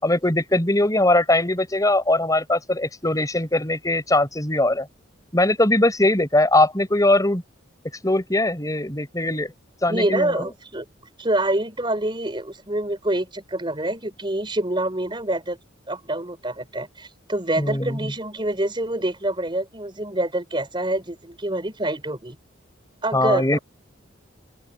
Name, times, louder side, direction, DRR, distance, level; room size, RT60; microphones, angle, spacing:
voice 1, 0.0-4.9 5.3-7.4 8.0-9.5 9.8-10.4 17.6-18.0 23.1-23.6, left 1 dB, 20° left, 4.3 m, -20 dB
voice 2, 9.9-10.8 11.2-15.6 15.9-22.4 23.0-23.6, right 1 dB, 25° right, 5.5 m, -26 dB
head